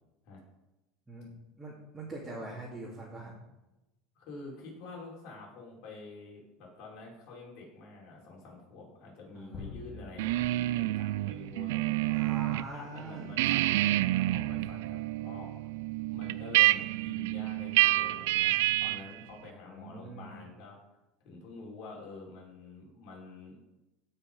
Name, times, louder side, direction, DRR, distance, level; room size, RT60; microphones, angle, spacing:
voice 1, 1.1-3.3 9.3-9.7 12.1-13.5 19.6-20.4, right 2 dB, 10° right, -6 dB, 2.6 m, -43 dB
voice 2, 4.1-12.2 12.7-13.9 14.1-15.5 16.1-20.8 21.2-23.6, left 3 dB, 55° left, -3 dB, 5.0 m, -48 dB
sound 1, 9.5-12.1, left 4 dB, 20° left, 2.5 m, -48 dB
sound 2, 10.2-12.7 13.0-19.1, right 17 dB, 85° right, 0.4 m, -28 dB
16.5 x 5.8 x 5.5 m, 0.99 s
supercardioid pair, 150°, 0 cm